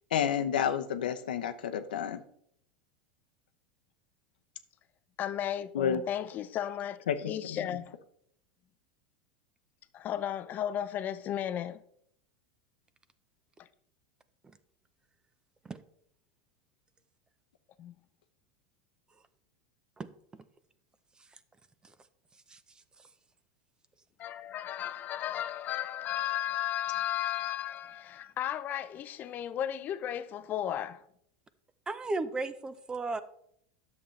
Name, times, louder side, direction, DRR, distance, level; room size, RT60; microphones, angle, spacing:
voice 1, 0.1-2.2 5.7-6.0 7.1-7.6, left 8 dB, 85° left, 0.7 m, -30 dB
voice 2, 5.2-8.0 9.9-11.8 17.8-17.9 24.2-31.0, left 11 dB, 40° left, 0.6 m, -34 dB
voice 3, 31.9-33.2, right 3 dB, 15° right, 0.7 m, -34 dB
10.0 x 7.1 x 3.2 m
hypercardioid pair, 105°, 5 cm